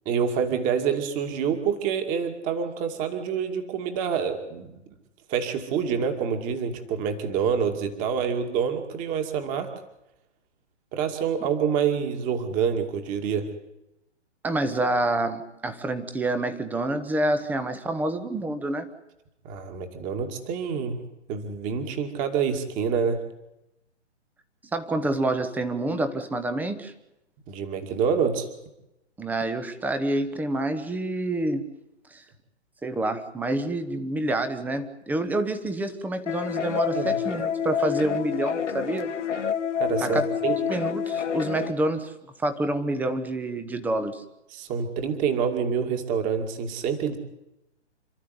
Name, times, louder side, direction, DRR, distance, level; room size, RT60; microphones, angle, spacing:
voice 1, 0.1-4.7 5.3-9.7 10.9-13.5 19.4-21.0 21.3-23.2 27.5-28.5 36.9-37.1 39.8-40.6 44.5-47.2, right 7 dB, 20° right, 6 dB, 2.4 m, -27 dB
voice 2, 14.4-18.9 24.7-26.9 29.2-31.6 32.1-32.2 32.8-39.1 40.0-40.3 40.7-42.1 42.4-44.2, right 2 dB, 5° right, 10 dB, 1.1 m, -27 dB
sound 1, 36.3-41.7, left 8 dB, 90° left, 2.1 m, -28 dB
28.5 x 13.0 x 9.5 m, 0.91 s
hypercardioid pair, 145°, 35 cm